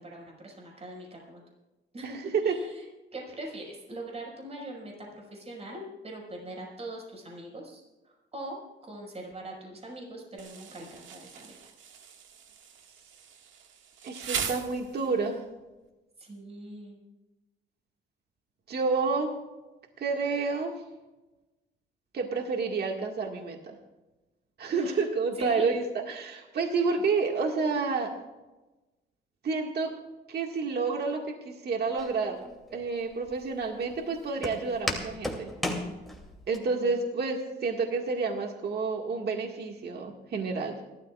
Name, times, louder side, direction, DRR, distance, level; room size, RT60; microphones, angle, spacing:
voice 1, 0.0-1.4 1.9-2.8 3.1-11.5 16.2-17.0 24.7-25.1 25.4-25.7 27.0-27.1 36.5-37.0, right 1 dB, 30° right, -1 dB, 5.5 m, -42 dB
voice 2, 2.0-2.5 14.0-15.4 18.7-19.3 20.0-20.7 22.1-23.6 24.6-28.1 29.4-29.9 30.3-31.2 31.5-32.4 32.7-35.5 36.5-40.8, right 4 dB, 55° right, 2 dB, 1.9 m, -29 dB
Insect, 10.4-15.3, right 7 dB, 75° right, 1.9 m, -39 dB
Walk footsteps, 32.0-36.6, left 1 dB, ahead, 2.7 m, -36 dB
29.5 x 13.5 x 2.4 m, 1.1 s
cardioid pair, 90°, 20 cm